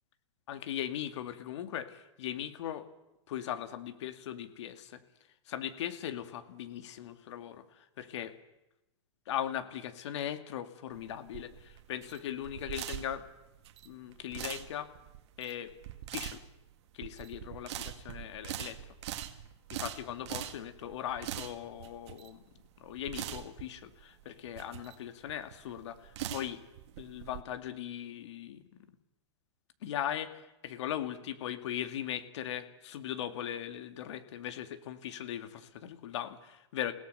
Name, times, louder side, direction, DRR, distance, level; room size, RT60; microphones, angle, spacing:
voice 1, 0.5-2.9 3.3-5.0 5.5-8.3 9.3-13.2 13.8-14.9 15.4-15.7 16.1-16.4 16.9-18.8 19.7-22.4 22.8-26.6 27.0-28.6 29.8-36.9, left 10 dB, 65° left, 10 dB, 2.3 m, -39 dB
sound 1, 10.9-27.4, right 12 dB, 60° right, 2.1 m, -43 dB
29.5 x 17.5 x 6.9 m, 0.93 s
hypercardioid pair, 130°, 16 cm